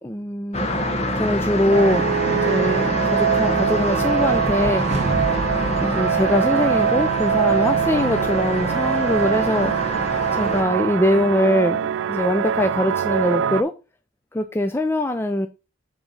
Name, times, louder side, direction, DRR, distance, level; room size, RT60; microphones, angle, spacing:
voice 1, 0.0-0.7 1.2-4.8 5.3-5.4 5.8-9.7 10.4-11.8 12.1-13.7 14.3-15.5, left 1 dB, 10° left, 0.4 m, -22 dB
sound 1, 0.5-10.6, left 1 dB, 30° left, 1.1 m, -26 dB
sound 2, 1.7-13.6, right 8 dB, 75° right, 0.3 m, -23 dB
sound 3, 3.7-7.0, right 1 dB, 35° right, 0.8 m, -31 dB
8.0 x 3.7 x 5.3 m
head